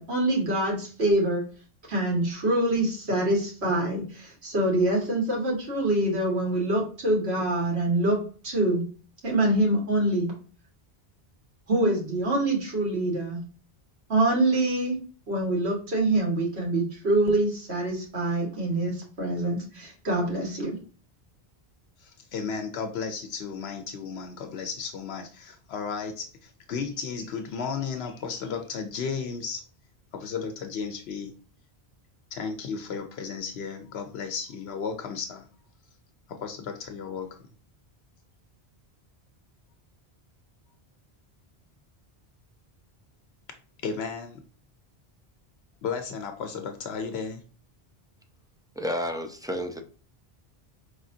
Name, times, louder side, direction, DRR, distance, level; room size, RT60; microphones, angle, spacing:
voice 1, 0.0-1.4 1.9-8.2 8.4-8.8 9.2-10.3 11.7-13.4 14.1-15.0 15.3-20.8, right 1 dB, 80° right, -2 dB, 1.9 m, -25 dB
voice 2, 22.0-29.6 30.1-31.3 32.3-35.5 36.3-37.3 43.8-44.4 45.8-47.4, left 5 dB, 80° left, 6 dB, 0.9 m, -34 dB
voice 3, 48.8-49.8, equal, 5° right, 4 dB, 0.4 m, -30 dB
4.9 x 3.4 x 2.7 m, 0.39 s
omnidirectional pair, 1.1 m